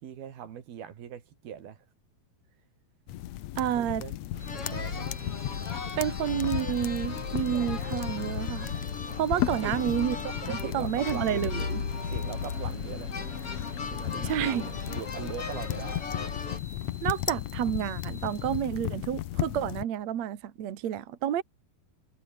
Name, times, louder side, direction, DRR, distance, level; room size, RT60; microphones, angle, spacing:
voice 1, 0.0-1.8 3.8-4.1 4.5-5.1 9.6-10.0 10.5-11.4 12.1-13.3 13.9-16.0, right 9 dB, 80° right, 4.3 m, -41 dB
sound 1, 3.1-19.8, left 14 dB, 80° left, 1.5 m, -35 dB
voice 2, 3.6-4.0 6.0-8.7 9.2-10.3 10.7-11.8 14.2-14.7 17.0-21.4, right 10 dB, 55° right, 2.5 m, -30 dB
sound 2, 4.3-16.6, left 4 dB, 40° left, 4.8 m, -36 dB
sound 3, 4.4-18.6, left 1 dB, 10° left, 6.2 m, -52 dB
omnidirectional pair, 4.3 m